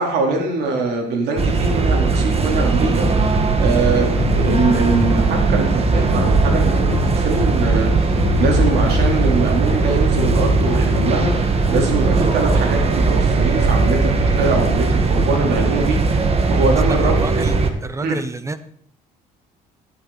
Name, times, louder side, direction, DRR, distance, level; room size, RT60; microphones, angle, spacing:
voice 1, 0.0-3.3 3.6-8.1 8.4-11.3 11.7-16.2 16.5-17.2 18.0-18.2, right 3 dB, 75° right, 1 dB, 3.7 m, -22 dB
sound 1, 1.4-17.7, right 4 dB, 35° right, 1.7 m, -18 dB
sound 2, 4.2-12.1, left 12 dB, 90° left, 0.6 m, -28 dB
voice 2, 16.9-18.6, right 2 dB, 15° right, 12 dB, 1.0 m, -28 dB
12.0 x 12.0 x 4.2 m, 0.63 s
cardioid pair, 110°, 17 cm